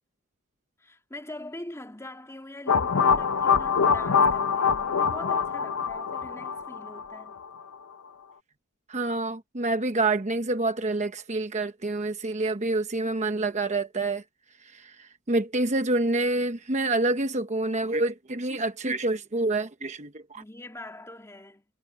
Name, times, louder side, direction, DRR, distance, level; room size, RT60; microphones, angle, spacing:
voice 1, 0.8-7.4 20.3-21.6, left 1 dB, 15° left, 2.5 m, -43 dB
sound 1, 2.7-7.4, left 6 dB, 85° left, 0.8 m, -24 dB
voice 2, 8.9-14.2 14.6-20.4, right 2 dB, 35° right, 1.0 m, -27 dB
head